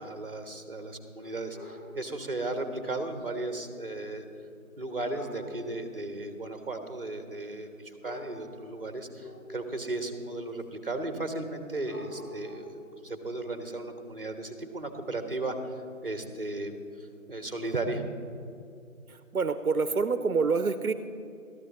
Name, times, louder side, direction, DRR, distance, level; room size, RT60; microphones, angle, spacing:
voice 1, 0.0-4.2 4.8-18.0, right 2 dB, 40° right, 7 dB, 1.1 m, -35 dB
sound 1, 1.2-1.9 3.1-3.3 3.6-3.7 5.1-5.5 6.5-6.6 7.6-7.7 8.0-8.5 9.2-9.8 10.6-10.7 11.7-12.8 15.3-15.4 16.1-16.2 17.0-17.1, left 1 dB, 75° left, 2.9 m, -46 dB
voice 2, 19.3-20.9, right 4 dB, 80° right, 11 dB, 0.7 m, -26 dB
13.5 x 12.0 x 4.2 m, 2.6 s
figure-of-eight pair, 170°, 43 cm